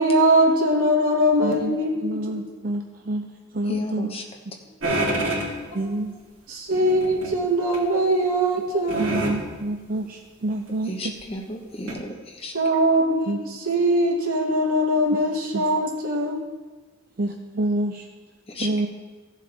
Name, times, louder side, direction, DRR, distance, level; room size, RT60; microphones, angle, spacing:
voice 1, 0.0-1.9 5.6-5.8 6.5-9.1 12.5-13.3 13.7-16.4, right 1 dB, 90° right, -2 dB, 2.3 m, -21 dB
voice 2, 1.4-3.2 3.5-4.1 5.7-6.1 9.0-11.1 13.3-13.4 15.5-15.6 17.2-18.1 18.6-18.9, right 1 dB, 40° right, 4 dB, 0.5 m, -28 dB
voice 3, 3.7-4.2 10.9-12.5 18.5-18.7, left 1 dB, 25° left, 2 dB, 1.1 m, -32 dB
sound 1, 4.8-5.5 6.7-7.3 7.7-7.8 8.9-9.4 10.7-10.8 11.2-11.3 11.9-12.0, right 1 dB, 65° right, 3.4 m, -26 dB
16.0 x 7.4 x 3.5 m, 1.3 s
head